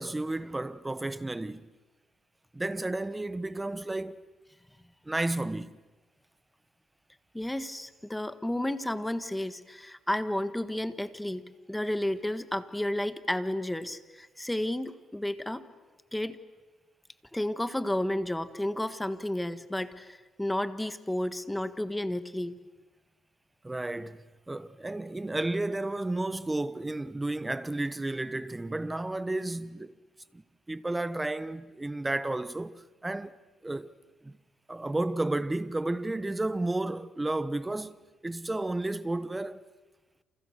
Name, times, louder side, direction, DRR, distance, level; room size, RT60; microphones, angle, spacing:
voice 1, 0.0-1.7 2.5-4.3 5.0-5.8 23.6-29.9 30.3-30.4 30.7-33.9 34.2-34.4 34.7-38.0 38.2-39.6, right 2 dB, 15° right, 1.2 m, -32 dB
voice 2, 7.3-15.6 16.1-16.4 17.3-22.5, left 1 dB, 5° left, 1.5 m, -32 dB
29.0 x 29.0 x 6.6 m
cardioid pair, 90°, 0 cm